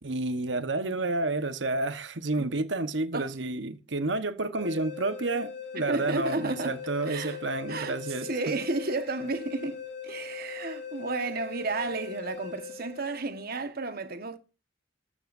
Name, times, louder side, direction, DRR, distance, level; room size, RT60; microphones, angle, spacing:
voice 1, 0.0-8.3, right 2 dB, 70° right, 1.2 m, -30 dB
sound 1, 4.6-13.5, left 7 dB, 65° left, 4.3 m, -40 dB
voice 2, 5.9-6.8 7.1-7.4 7.7-8.0 8.2-14.4, right 3 dB, 55° right, 1.4 m, -32 dB
14.5 x 12.5 x 2.7 m
head